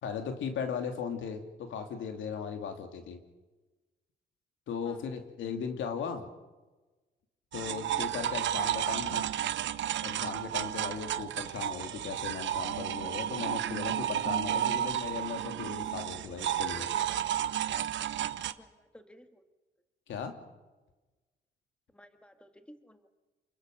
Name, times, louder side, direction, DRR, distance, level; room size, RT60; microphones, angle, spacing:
voice 1, 0.0-3.2 4.7-6.3 7.5-9.3 10.0-16.9 20.1-20.3, left 6 dB, 75° left, 5 dB, 3.0 m, -37 dB
sound 1, 7.5-18.5, right 11 dB, 70° right, 0.9 m, -32 dB
voice 2, 18.6-19.5 21.9-23.1, equal, 5° left, 8 dB, 1.8 m, -56 dB
28.5 x 21.5 x 6.6 m, 1.2 s
cardioid pair, 90°, 20 cm